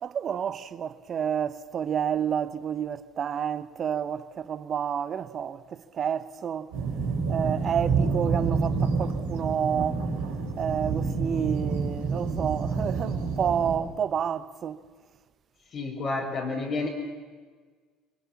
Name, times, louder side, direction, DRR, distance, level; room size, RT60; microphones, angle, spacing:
voice 1, 0.0-6.7 7.3-10.1 10.6-14.8, right 8 dB, 45° right, 1.1 m, -29 dB
sound 1, 6.7-13.8, right 4 dB, 85° right, 4.2 m, -28 dB
voice 2, 15.7-16.9, left 3 dB, 50° left, 4.9 m, -30 dB
26.5 x 23.0 x 7.3 m
hypercardioid pair, 65°, 0 cm